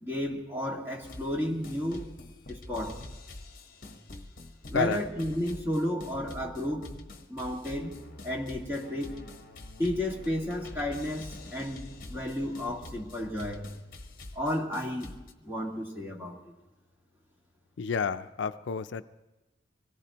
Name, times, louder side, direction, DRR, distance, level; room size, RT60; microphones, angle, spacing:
voice 1, 0.0-2.1 2.5-3.0 4.7-7.0 7.3-8.0 8.2-9.2 9.8-13.6 14.4-15.1 15.4-16.4, left 1 dB, 10° right, -1 dB, 1.8 m, -32 dB
sound 1, 1.0-1.4 1.6-15.3, left 2 dB, 45° left, 1.1 m, -45 dB
voice 2, 17.8-19.0, left 5 dB, 70° left, 11 dB, 0.4 m, -30 dB
24.5 x 17.5 x 2.9 m, 1.1 s
head